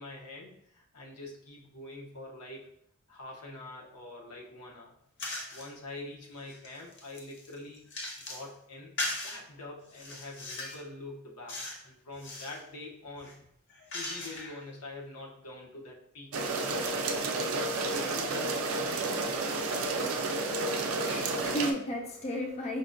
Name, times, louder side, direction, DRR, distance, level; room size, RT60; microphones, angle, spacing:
voice 1, 0.0-2.7 3.1-4.9 5.5-7.9 8.3-8.9 9.2-13.4 13.9-16.7 17.9-19.2, left 2 dB, 85° left, -1 dB, 0.8 m, -45 dB
sound 1, 5.2-5.7 6.2-8.5 9.0-9.4 9.9-10.8 11.5-11.8 12.1-12.6 13.2-14.6, left 2 dB, 50° left, 0.7 m, -39 dB
sound 2, 16.3-21.7, right 3 dB, 65° right, 0.4 m, -31 dB
voice 2, 20.7-22.8, equal, 30° left, 0 dB, 0.3 m, -34 dB
5.1 x 2.1 x 2.5 m, 0.72 s
head